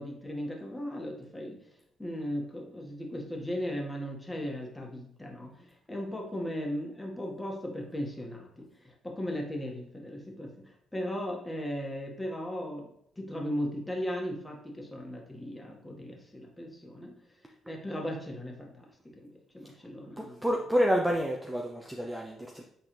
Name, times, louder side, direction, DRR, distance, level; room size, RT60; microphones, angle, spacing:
voice 1, 0.0-1.7 2.0-17.1 17.7-18.7 19.2-19.3 19.5-20.5, equal, 10° left, -1 dB, 1.9 m, -37 dB
voice 2, 20.2-22.6, equal, 10° right, 1 dB, 0.7 m, -29 dB
8.8 x 3.9 x 3.4 m, 0.72 s
cardioid pair, 90°, 0 cm